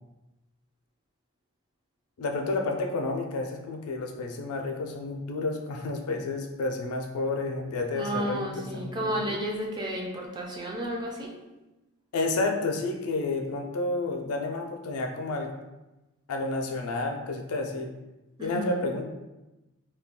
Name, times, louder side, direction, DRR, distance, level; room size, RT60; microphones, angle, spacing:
voice 1, 2.2-9.4 12.1-15.5 16.3-17.9 18.4-19.0, left 3 dB, 90° left, 3 dB, 0.4 m, -30 dB
voice 2, 7.9-11.3 18.4-18.9, equal, 20° right, -2 dB, 0.4 m, -32 dB
2.2 x 2.2 x 3.5 m, 1.0 s
head